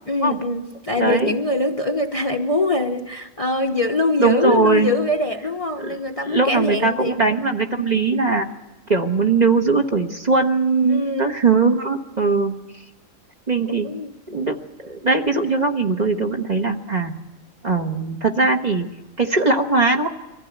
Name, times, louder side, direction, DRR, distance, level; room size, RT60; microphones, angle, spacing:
voice 1, 0.1-7.1 10.9-11.3 13.7-14.1, left 2 dB, 30° left, 4 dB, 0.9 m, -23 dB
voice 2, 1.0-1.3 4.2-4.9 5.8-6.0 6.2-8.5 8.9-12.5 13.5-13.9 14.3-17.1 17.6-18.8 19.2-20.1, right 4 dB, 30° right, 3 dB, 1.4 m, -20 dB
24.0 x 15.0 x 9.3 m, 1.1 s
omnidirectional pair, 1.5 m